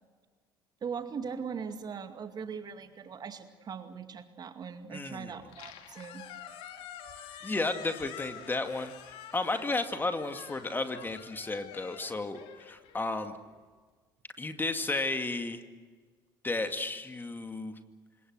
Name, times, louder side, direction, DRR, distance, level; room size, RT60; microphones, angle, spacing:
voice 1, 0.8-6.2, right 6 dB, 40° right, 8 dB, 2.3 m, -40 dB
voice 2, 4.9-5.3 7.4-13.3 14.4-15.6 16.4-17.7, left 3 dB, 20° left, 7 dB, 2.4 m, -33 dB
Squeak, 5.4-13.6, left 9 dB, 60° left, 2.5 m, -48 dB
28.5 x 26.0 x 6.4 m, 1.4 s
figure-of-eight pair, 55°, 11 cm